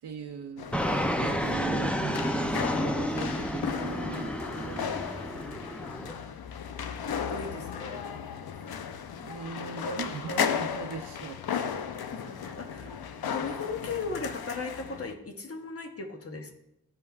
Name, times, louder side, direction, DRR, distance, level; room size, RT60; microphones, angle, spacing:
voice 1, 0.0-5.1 9.2-11.8 12.4-12.5 12.8-12.9, right 5 dB, 85° right, 3 dB, 0.6 m, -40 dB
sound 1, 0.6-15.1, left 7 dB, 70° left, 0.5 m, -35 dB
Fixed-wing aircraft airplane, 0.7-6.1, equal, 5° left, 0.4 m, -30 dB
voice 2, 7.3-8.0 12.1-13.0 13.3-16.5, left 4 dB, 35° left, 4 dB, 0.8 m, -37 dB
12.0 x 5.3 x 2.3 m, 0.84 s
wide cardioid pair, 140°, 39 cm